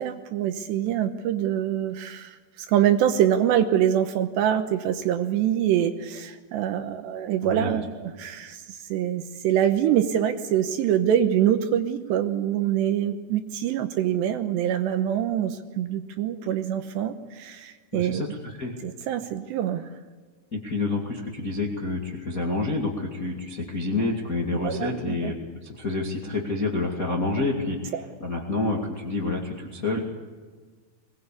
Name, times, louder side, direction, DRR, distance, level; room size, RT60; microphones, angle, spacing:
voice 1, 0.0-18.2 18.8-19.9 24.6-25.3 27.9-28.0, right 10 dB, 75° right, 8 dB, 2.8 m, -25 dB
voice 2, 7.4-7.8 17.9-18.7 20.5-25.4 25.6-30.0, left 3 dB, 70° left, -1 dB, 0.8 m, -28 dB
23.0 x 19.5 x 8.4 m, 1.5 s
omnidirectional pair, 5.7 m